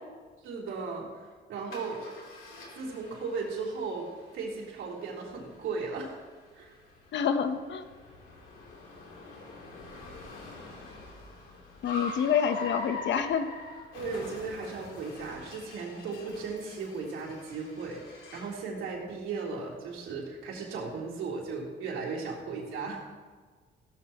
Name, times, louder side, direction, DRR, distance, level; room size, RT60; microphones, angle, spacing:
voice 1, 0.4-2.0 2.7-4.1 4.3-6.2 6.5-6.8 13.9-23.1, right 4 dB, 85° right, -3 dB, 3.6 m, -36 dB
Car, 1.7-18.6, left 3 dB, 90° left, 3.6 m, -45 dB
voice 2, 7.1-7.8 11.8-13.5, left 7 dB, 65° left, 9 dB, 1.1 m, -27 dB
16.5 x 13.5 x 3.1 m, 1.5 s
cardioid pair, 90°, 20 cm